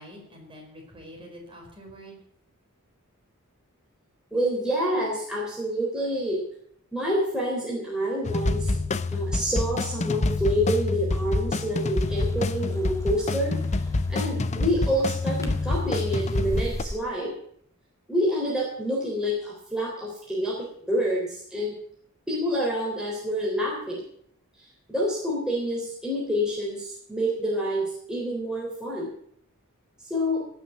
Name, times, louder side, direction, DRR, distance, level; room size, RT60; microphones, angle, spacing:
voice 1, 0.0-2.2, equal, 25° right, 0 dB, 4.8 m, -45 dB
voice 2, 4.3-6.4 6.9-8.7 9.1-13.8 14.1-17.3 18.1-20.6 20.9-21.7 22.3-24.0 24.9-29.1 30.1-30.4, equal, 5° right, -5 dB, 3.6 m, -27 dB
sound 1, 8.2-16.8, left 3 dB, 30° left, 0.6 m, -27 dB
sound 2, 11.8-17.0, equal, 15° left, 1.6 m, -41 dB
17.5 x 6.3 x 9.2 m, 0.66 s
head